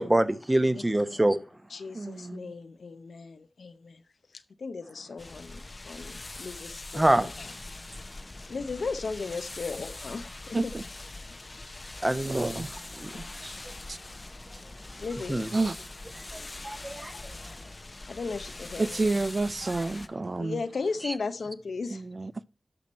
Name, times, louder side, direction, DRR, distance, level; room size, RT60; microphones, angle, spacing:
voice 1, 0.0-1.4 6.9-7.3 12.0-12.6 13.0-13.1 15.3-15.5 16.6-17.1, right 1 dB, 20° right, 0.9 m, -24 dB
voice 2, 0.7-1.2 1.7-4.0 4.3-7.5 8.0-8.2 8.5-10.7 13.1-13.6 15.0-15.4 16.3-16.7 17.1-17.5 18.1-19.1 20.4-22.1, left 4 dB, 90° left, 0.8 m, -37 dB
voice 3, 1.9-2.5 10.5-10.8 12.2-12.8 13.1-13.5 13.9-14.0 15.5-15.8 18.8-20.6 21.9-22.4, right 3 dB, 45° right, 0.4 m, -30 dB
sound 1, 5.2-20.1, left 2 dB, 40° left, 0.7 m, -42 dB
11.5 x 6.1 x 4.3 m
wide cardioid pair, 65°, 0 cm